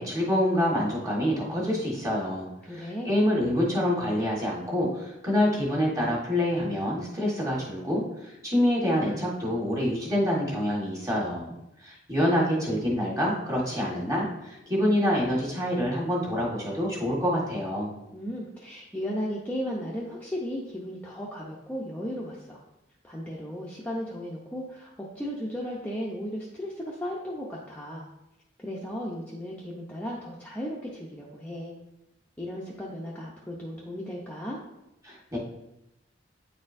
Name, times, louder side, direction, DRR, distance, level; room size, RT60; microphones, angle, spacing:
voice 1, 0.0-11.5 11.8-17.9 35.0-35.4, equal, 15° right, -4 dB, 1.6 m, -26 dB
voice 2, 2.6-3.1 18.1-22.6 23.0-28.1 28.6-31.8 32.4-34.6, equal, 10° left, -4 dB, 0.6 m, -35 dB
9.3 x 4.2 x 2.6 m, 0.89 s
head